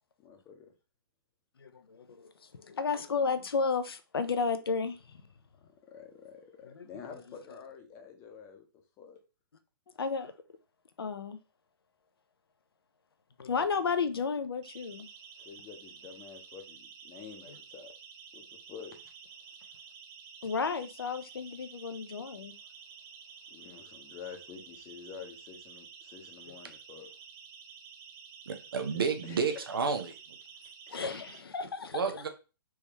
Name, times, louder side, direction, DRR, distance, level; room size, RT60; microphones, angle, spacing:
voice 1, 0.2-0.7 5.8-8.7 9.0-9.2 15.4-17.9 18.3-19.1 23.5-27.1 29.2-29.5, left 6 dB, 25° left, 0.7 m, -48 dB
voice 2, 1.6-5.0 6.7-6.9 10.0-10.3 11.0-11.4 13.4-15.1 20.4-22.5 30.9-32.2, left 5 dB, 70° left, 0.5 m, -33 dB
Siren, 14.6-31.4, right 6 dB, 25° right, 0.6 m, -51 dB
voice 3, 28.5-30.1 31.9-32.3, right 5 dB, 65° right, 0.7 m, -31 dB
3.5 x 3.1 x 2.9 m
figure-of-eight pair, 120°, 13 cm